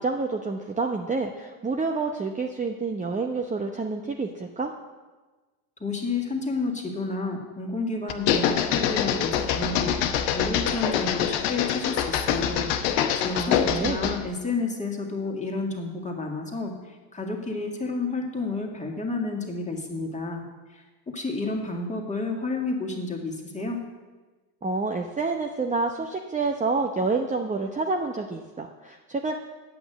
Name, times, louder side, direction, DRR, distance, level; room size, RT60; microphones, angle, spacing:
voice 1, 0.0-4.7 13.3-14.0 24.6-29.3, right 3 dB, 15° right, 3 dB, 0.8 m, -28 dB
voice 2, 5.8-12.7 13.2-20.4 20.7-23.8, left 3 dB, 15° left, 0 dB, 2.1 m, -31 dB
sound 1, 8.1-14.2, left 9 dB, 70° left, 1.0 m, -25 dB
8.8 x 6.0 x 8.1 m, 1.3 s
supercardioid pair, 85°, 45 cm